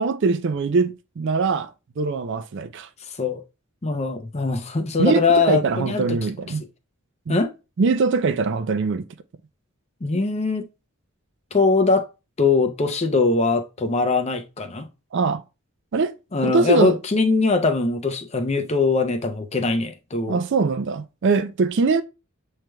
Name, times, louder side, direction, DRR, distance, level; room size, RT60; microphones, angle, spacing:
voice 1, 0.0-1.7 2.0-2.9 5.0-6.6 7.3-7.4 7.8-9.0 15.1-15.4 15.9-16.1 16.4-17.0 20.3-22.0, right 4 dB, 55° right, 0.4 m, -22 dB
voice 2, 3.1-3.4 3.8-6.2 7.3-7.5 10.0-10.6 11.5-12.1 12.4-14.9 16.3-20.4, left 4 dB, 30° left, 0.6 m, -21 dB
7.3 x 3.2 x 2.2 m
head